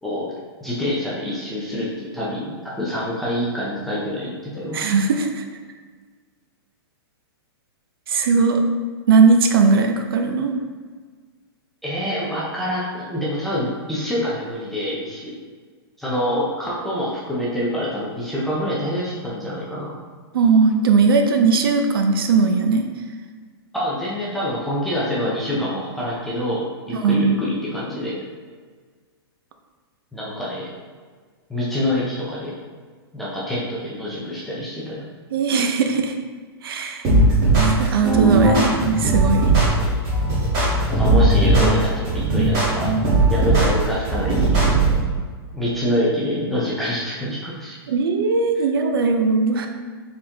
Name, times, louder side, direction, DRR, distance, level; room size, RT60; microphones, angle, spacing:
voice 1, 0.0-0.3 0.6-4.8 11.8-15.3 16.0-20.0 23.7-28.2 30.1-30.7 31.5-32.5 33.1-35.0 39.8-40.0 40.9-42.9 43.3-44.6 45.5-47.8, left 1 dB, ahead, -8 dB, 0.3 m, -26 dB
voice 2, 4.7-5.4 8.1-8.6 9.1-10.5 20.3-22.8 26.9-27.4 35.3-36.1 36.6-37.1 37.6-39.4 47.9-49.7, right 4 dB, 60° right, 5 dB, 0.5 m, -18 dB
sound 1, 37.0-45.0, right 2 dB, 20° right, 1.0 m, -18 dB
4.3 x 3.6 x 2.8 m, 1.5 s
hypercardioid pair, 175°, 13 cm